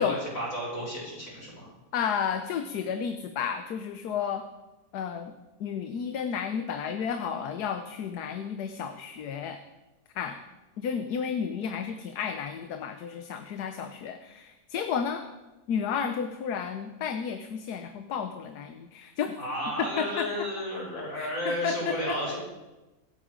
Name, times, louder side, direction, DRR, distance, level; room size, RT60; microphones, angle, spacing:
voice 1, 0.0-1.7 19.4-22.4, equal, 55° left, -4 dB, 6.6 m, -32 dB
voice 2, 1.9-4.5 4.9-5.3 5.6-9.6 10.1-10.4 10.8-15.2 15.7-19.3 19.8-20.3 21.2-22.2, left 7 dB, 80° left, 8 dB, 1.4 m, -32 dB
25.0 x 8.6 x 5.1 m, 1.1 s
omnidirectional pair, 1.7 m